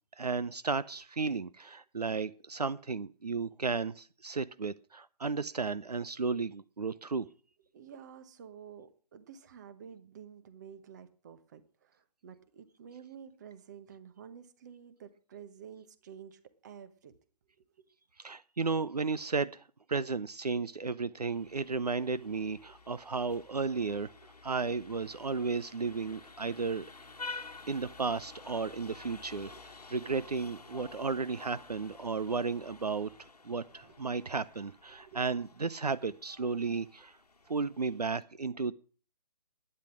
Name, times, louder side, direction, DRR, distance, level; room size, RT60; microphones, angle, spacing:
voice 1, 0.2-7.3 18.2-24.1 24.4-26.9 27.7-37.2 37.5-38.7, right 4 dB, 70° right, 0.6 m, -34 dB
voice 2, 7.7-17.1 17.6-17.9 24.2-24.3 33.8-34.1 34.9-35.3, right 8 dB, 25° right, 1.1 m, -51 dB
Vehicle horn car horn honking, 21.3-38.1, left 4 dB, 70° left, 1.3 m, -51 dB
11.5 x 9.9 x 6.1 m
figure-of-eight pair, 140°, 21 cm